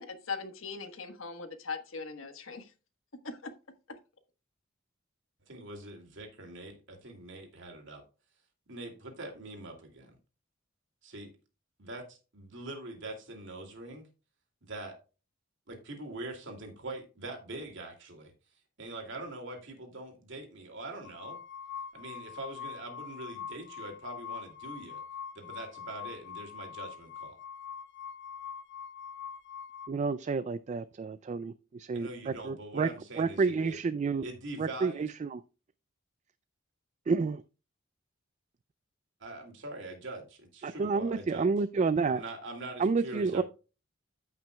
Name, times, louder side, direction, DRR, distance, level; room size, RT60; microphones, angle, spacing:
voice 1, 0.0-2.6 3.2-3.4, left 4 dB, 75° left, 8 dB, 1.3 m, -39 dB
voice 2, 5.5-8.0 8.7-10.1 11.0-11.3 11.8-14.1 14.6-15.0 15.7-18.3 18.8-21.4 21.9-25.0 25.3-27.4 31.9-33.8 34.2-35.1 39.2-41.5 42.1-43.4, right 2 dB, 65° right, 3 dB, 2.5 m, -43 dB
sound 1, 21.0-29.9, left 7 dB, 60° left, 1.1 m, -43 dB
voice 3, 29.9-32.9 33.2-34.2 34.6-35.4 37.1-37.4 40.6-42.2 42.8-43.4, right 4 dB, 35° right, 13 dB, 0.3 m, -30 dB
14.5 x 5.9 x 2.3 m, 0.32 s
head